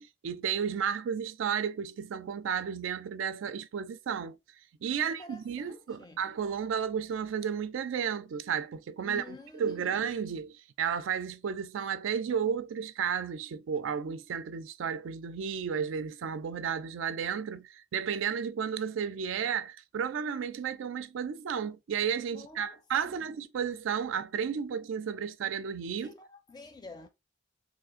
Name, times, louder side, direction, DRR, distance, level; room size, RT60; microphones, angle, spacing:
voice 1, 0.0-4.4 4.8-26.1, right 7 dB, 80° right, 0.4 m, -33 dB
voice 2, 5.0-6.3 9.0-9.9 22.3-23.2 26.0-27.1, left 2 dB, 20° left, 0.4 m, -49 dB
3.1 x 2.4 x 3.5 m
head